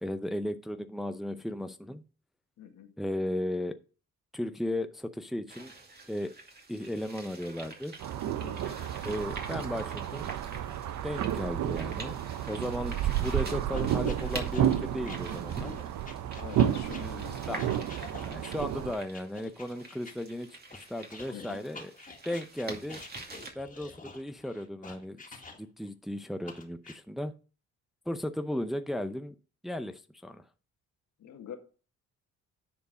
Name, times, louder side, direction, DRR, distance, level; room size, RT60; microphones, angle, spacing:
voice 1, 0.0-2.0 3.0-3.8 4.3-5.7 6.1-6.3 6.7-7.9 9.0-10.3 11.0-12.1 12.5-15.7 17.5-17.6 18.2-21.9 22.2-23.0 23.6-27.3 28.1-29.3 29.6-30.4, left 1 dB, ahead, 8 dB, 0.6 m, -35 dB
voice 2, 2.6-2.9 8.4-8.8 16.4-17.4 21.3-21.6 31.2-31.5, left 9 dB, 70° left, 5 dB, 1.7 m, -45 dB
sound 1, 5.5-23.5, right 3 dB, 30° right, 2.4 m, -46 dB
sound 2, 8.0-18.9, right 10 dB, 75° right, 0.8 m, -31 dB
sound 3, 13.2-20.1 20.7-25.9 26.5-27.0, left 4 dB, 25° left, 2.1 m, -48 dB
10.0 x 4.6 x 5.1 m, 0.37 s
cardioid pair, 90°, 30 cm